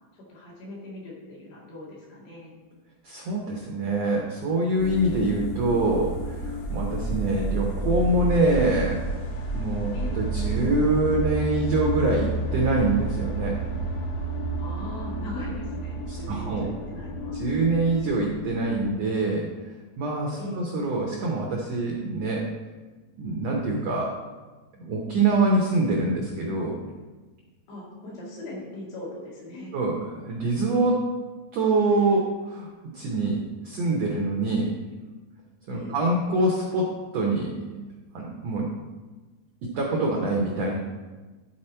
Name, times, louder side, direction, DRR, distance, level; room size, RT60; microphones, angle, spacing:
voice 1, 0.1-2.5 9.9-10.2 14.6-17.4 20.4-20.7 27.7-29.7 35.7-36.0, left 1 dB, 90° left, -5 dB, 4.3 m, -40 dB
voice 2, 3.0-9.0 9.5-13.6 16.1-16.6 17.3-22.5 23.2-24.1 24.7-26.8 29.7-31.0 31.5-34.7 35.7-38.7 39.6-40.8, right 2 dB, 80° right, -1 dB, 1.5 m, -25 dB
sound 1, 4.8-18.9, right 2 dB, 70° left, 1.7 m, -30 dB
12.0 x 4.4 x 4.4 m, 1.3 s
omnidirectional pair, 4.4 m